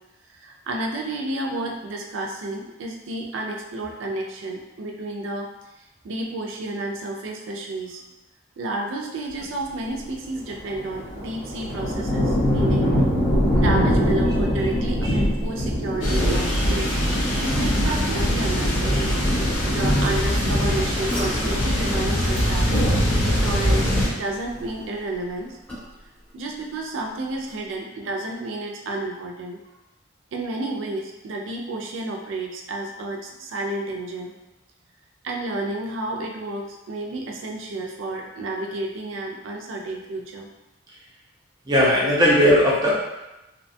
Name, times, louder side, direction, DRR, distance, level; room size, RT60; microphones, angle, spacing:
voice 1, 0.3-5.5 5.8-8.0 8.6-12.9 13.5-16.9 17.2-18.9 19.6-22.7 23.2-25.6 26.3-29.6 30.3-34.3 35.2-40.5, right 2 dB, 80° right, 0 dB, 0.4 m, -31 dB
sound 1, 10.4-23.2 23.5-24.2, equal, 45° left, 0.8 m, -24 dB
sound 2, 16.0-24.1, equal, 80° left, 0.6 m, -23 dB
sound 3, 21.1-26.3 26.6-27.1 27.5-27.6, equal, 5° left, 0.8 m, -35 dB
voice 2, 41.7-43.0, left 1 dB, 20° right, -4 dB, 0.5 m, -18 dB
2.7 x 2.2 x 2.6 m, 0.97 s
head